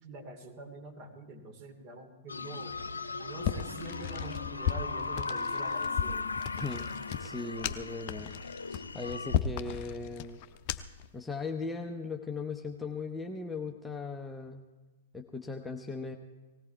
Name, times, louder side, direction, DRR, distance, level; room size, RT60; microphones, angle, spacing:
voice 1, 0.0-2.7 3.1-6.3, right 2 dB, 35° right, 5 dB, 2.7 m, -45 dB
sound 1, 2.3-9.4, left 4 dB, 75° left, 0.7 m, -37 dB
sound 2, 3.4-11.1, left 9 dB, 40° left, 0.7 m, -35 dB
voice 2, 7.2-10.4 11.1-14.6 15.1-16.2, left 4 dB, 5° left, 1 dB, 0.8 m, -38 dB
19.0 x 16.5 x 4.6 m, 1.2 s
figure-of-eight pair, 105°, 0 cm